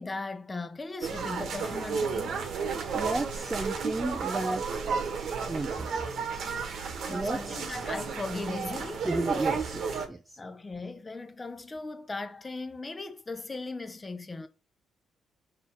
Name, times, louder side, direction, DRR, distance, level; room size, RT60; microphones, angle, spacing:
voice 1, 0.0-2.4 7.1-9.1 10.4-14.5, left 3 dB, 20° left, 1.0 m, -38 dB
sound 1, 1.0-10.1, right 5 dB, 70° right, 1.6 m, -32 dB
voice 2, 2.9-4.9 5.5-5.9 7.0-7.6 9.0-10.4, right 2 dB, 20° right, 0.7 m, -33 dB
5.7 x 4.0 x 4.6 m
cardioid pair, 90°, 0 cm